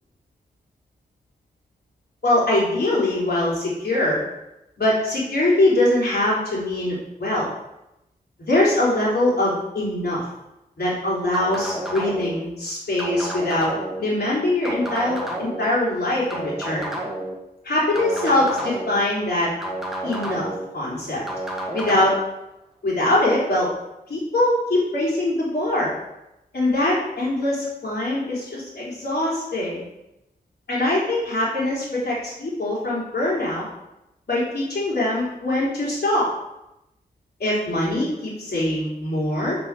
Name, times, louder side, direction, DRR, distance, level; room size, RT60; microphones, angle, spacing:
voice 1, 2.2-4.2 4.8-7.5 8.4-10.2 10.8-13.7 14.0-16.9 17.6-19.5 20.0-20.5 20.7-21.2 21.7-22.1 22.8-23.7 24.1-25.9 26.5-29.9 30.7-33.7 34.3-36.3 37.4-39.6, left 1 dB, 75° left, -6 dB, 3.8 m, -22 dB
sound 1, 11.3-12.4 13.0-14.0 14.6-15.7 16.3-17.3 18.0-19.0 19.6-20.7 21.3-22.1, right 1 dB, ahead, 1.9 m, -30 dB
6.8 x 6.7 x 6.9 m, 0.89 s
wide cardioid pair, 95°, 17 cm